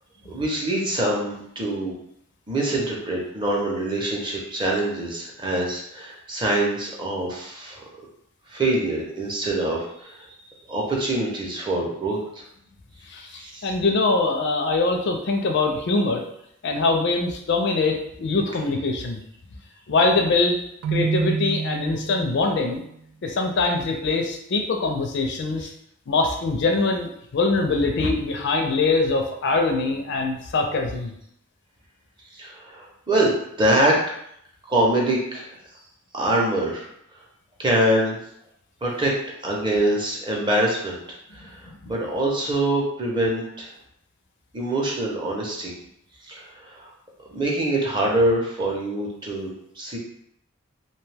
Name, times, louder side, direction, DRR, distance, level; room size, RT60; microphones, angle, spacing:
voice 1, 0.3-2.0 2.5-7.8 8.5-10.2 10.6-12.4 13.3-13.7 32.3-34.0 34.7-35.6 36.1-36.9 37.6-38.2 38.8-39.1 39.4-41.0 41.3-43.7 44.5-45.7 46.3-46.9 47.3-50.0, right 1 dB, 25° right, -2 dB, 0.6 m, -24 dB
voice 2, 13.1-16.2 16.6-19.2 19.9-20.6 20.9-22.8 23.2-25.7 26.1-31.1, left 3 dB, 55° left, 3 dB, 0.4 m, -23 dB
Keyboard (musical), 20.8-22.7, right 5 dB, 75° right, 0.3 m, -27 dB
2.7 x 2.2 x 3.2 m, 0.72 s
head